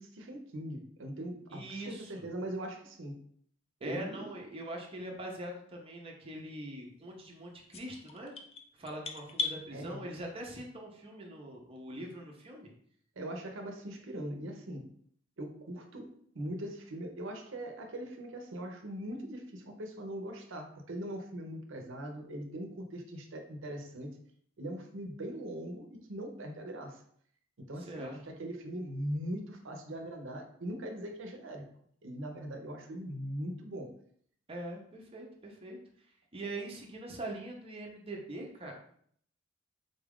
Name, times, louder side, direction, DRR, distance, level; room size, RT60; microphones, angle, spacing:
voice 1, 0.0-3.2 3.8-4.3 9.7-10.0 13.2-14.9 15.4-24.2 24.6-27.0 27.7-31.7 32.0-33.9, right 1 dB, 65° right, 4 dB, 0.7 m, -41 dB
voice 2, 1.5-2.3 3.8-8.3 8.7-12.7 27.8-28.4 34.5-35.8 36.3-38.7, right 1 dB, 30° right, -1 dB, 0.6 m, -43 dB
sound 1, 7.7-9.6, left 4 dB, 30° left, 0.4 m, -37 dB
3.9 x 2.4 x 3.5 m, 0.63 s
head